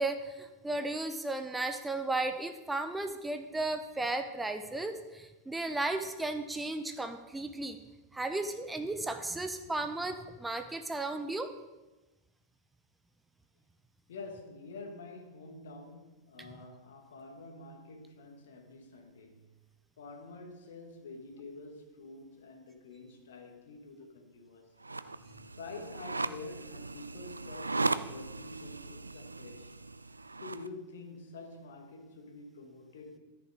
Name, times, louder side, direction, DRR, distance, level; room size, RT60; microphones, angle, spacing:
voice 1, 0.0-7.8 8.1-11.5, right 2 dB, 10° right, 0.6 m, -34 dB
voice 2, 14.1-19.4 20.0-24.7 25.6-29.7 30.4-33.2, left 3 dB, 60° left, 1.6 m, -48 dB
sound 1, 24.8-30.7, right 3 dB, 80° right, 0.3 m, -37 dB
13.5 x 6.0 x 4.7 m
figure-of-eight pair, 90°, 0 cm